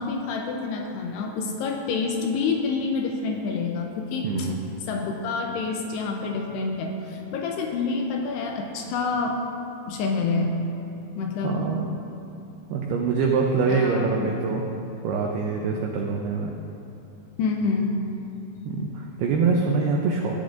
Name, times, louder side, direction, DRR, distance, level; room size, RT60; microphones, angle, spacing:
voice 1, 0.0-4.5 4.9-9.4 9.8-10.6 11.2-11.7 13.7-14.4 17.4-18.0, left 4 dB, 85° left, 2 dB, 2.5 m, -27 dB
voice 2, 4.2-4.6 11.4-11.9 12.7-14.6 15.0-16.5 18.7-20.4, right 4 dB, 85° right, 0 dB, 2.2 m, -24 dB
17.0 x 10.0 x 2.6 m, 2.9 s
omnidirectional pair, 5.4 m